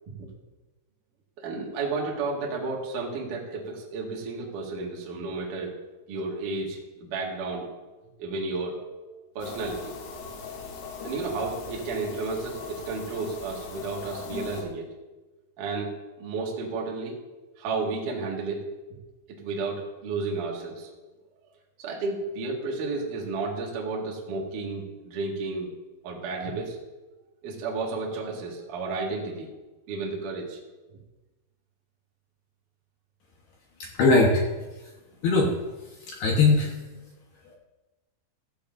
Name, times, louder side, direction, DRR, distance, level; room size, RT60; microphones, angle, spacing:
voice 1, 1.4-5.7 6.1-7.7 8.2-8.8 9.3-9.9 11.0-14.9 15.6-15.9 16.2-17.1 17.6-18.7 19.4-20.9 21.8-25.7 26.0-26.8 27.4-29.5 29.9-30.6, right 3 dB, 55° right, -2 dB, 2.7 m, -32 dB
sound 1, 9.4-14.6, left 5 dB, 85° left, 4.5 m, -39 dB
voice 2, 33.8-34.4 35.2-35.5 36.0-36.7, left 3 dB, 70° left, -1 dB, 2.6 m, -20 dB
15.0 x 15.0 x 2.6 m, 1.1 s
omnidirectional pair, 5.8 m